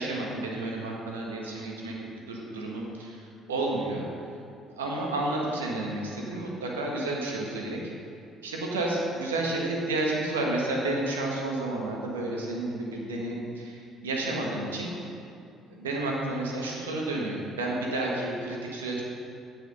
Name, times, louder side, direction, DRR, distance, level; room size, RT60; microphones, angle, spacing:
voice 1, 0.0-4.1 4.8-7.8 8.4-14.9 15.8-19.0, right 2 dB, 90° right, -2 dB, 1.4 m, -31 dB
9.5 x 5.9 x 5.5 m, 2.6 s
hypercardioid pair, 55°, 0 cm